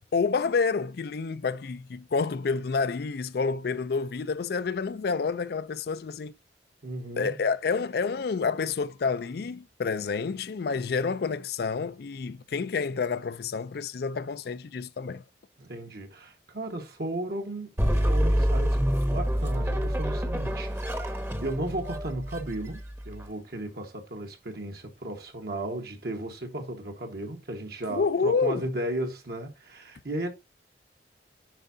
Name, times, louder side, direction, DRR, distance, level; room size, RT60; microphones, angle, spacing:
voice 1, 0.1-6.3 7.2-15.2 27.9-28.7, left 5 dB, 60° left, 0.4 m, -29 dB
voice 2, 6.8-7.3 15.6-30.3, right 1 dB, 60° right, 1.3 m, -35 dB
sound 1, 17.8-23.3, equal, 15° right, 0.9 m, -27 dB
9.1 x 4.7 x 2.6 m
head